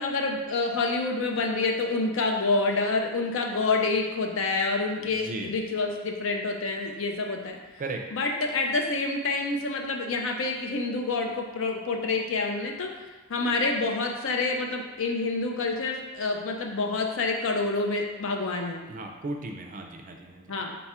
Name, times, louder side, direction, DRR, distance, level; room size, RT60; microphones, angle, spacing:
voice 1, 0.0-7.6 8.1-12.9 13.3-18.8 20.5-20.8, left 3 dB, 65° left, 2 dB, 0.5 m, -27 dB
voice 2, 5.0-5.5 7.8-8.0 18.9-20.5, right 2 dB, 40° right, 3 dB, 0.4 m, -36 dB
4.0 x 2.3 x 4.2 m, 1.2 s
head